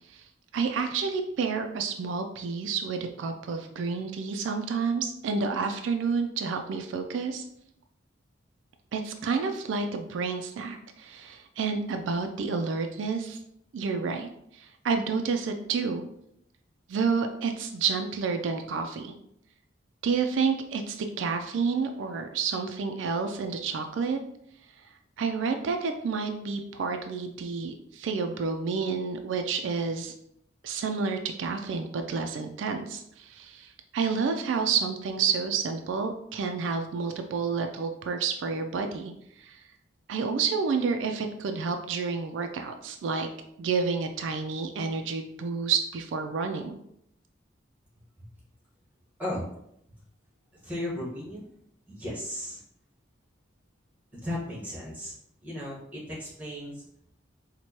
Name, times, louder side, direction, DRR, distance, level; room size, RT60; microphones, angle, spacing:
voice 1, 0.5-7.4 8.9-13.4 13.7-16.1 16.9-19.2 20.0-24.2 25.2-30.1 30.6-39.6 40.1-43.3 43.6-46.8, right 5 dB, 80° right, 5 dB, 0.3 m, -29 dB
voice 2, 50.6-51.4 51.9-52.6 54.1-55.1 55.4-56.8, left 1 dB, 10° right, -6 dB, 1.2 m, -35 dB
4.4 x 2.2 x 2.8 m, 0.74 s
head